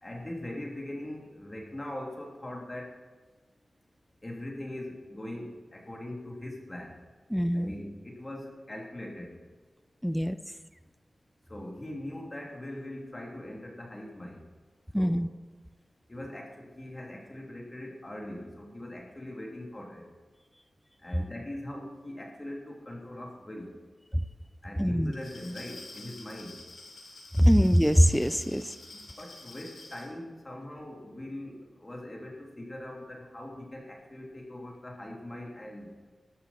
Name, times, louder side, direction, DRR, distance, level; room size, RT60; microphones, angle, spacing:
voice 1, 0.0-2.9 4.2-7.0 7.5-9.4 11.5-14.4 15.0-15.2 16.1-20.1 21.0-23.7 24.6-26.6 28.9-35.9, left 1 dB, 25° left, -1 dB, 3.1 m, -41 dB
voice 2, 7.3-7.7 10.0-10.4 14.9-15.3 24.8-25.1 27.4-28.7, equal, ahead, 12 dB, 0.5 m, -23 dB
Glass, 25.0-30.1, left 2 dB, 75° left, 5.0 m, -48 dB
12.5 x 12.5 x 4.4 m, 1.4 s
wide cardioid pair, 75°, 0 cm